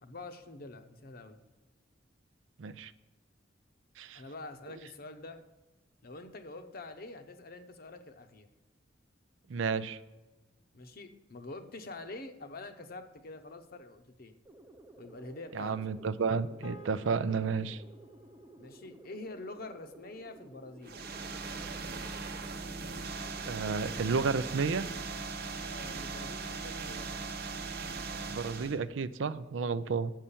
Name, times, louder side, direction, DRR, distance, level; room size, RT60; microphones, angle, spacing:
voice 1, 0.0-1.4 4.1-5.4 6.0-8.5 10.7-14.4 15.0-15.8 18.6-21.0 25.6-27.3, left 2 dB, 50° left, 8 dB, 0.8 m, -46 dB
voice 2, 2.6-2.9 4.0-4.2 9.5-10.0 15.5-17.8 23.5-24.9 28.1-30.1, right 5 dB, 75° right, 14 dB, 0.5 m, -32 dB
sound 1, 14.4-24.5, right 1 dB, 15° right, 0.6 m, -55 dB
sound 2, 16.6-21.1, equal, 85° left, 0.9 m, -57 dB
sound 3, 20.8-28.8, right 4 dB, 55° right, 0.8 m, -39 dB
7.5 x 5.6 x 7.0 m, 1.1 s
head